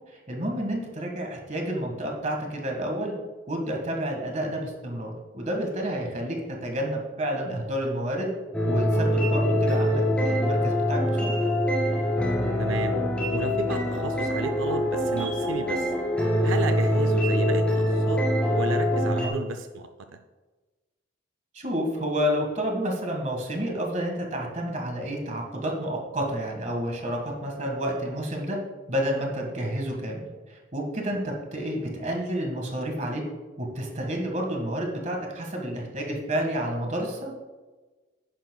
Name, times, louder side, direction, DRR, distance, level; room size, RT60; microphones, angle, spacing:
voice 1, 0.1-3.1 3.5-8.3 8.6-11.4 19.1-19.3 21.5-28.6 28.9-33.2 33.6-37.3, equal, 40° right, 1 dB, 1.7 m, -30 dB
sound 1, 8.5-19.3, equal, 5° left, 2.3 m, -24 dB
voice 2, 12.6-13.0 13.3-15.9 16.4-18.2 18.5-19.9, right 5 dB, 85° right, 8 dB, 0.5 m, -33 dB
10.5 x 9.6 x 2.3 m, 1.3 s
head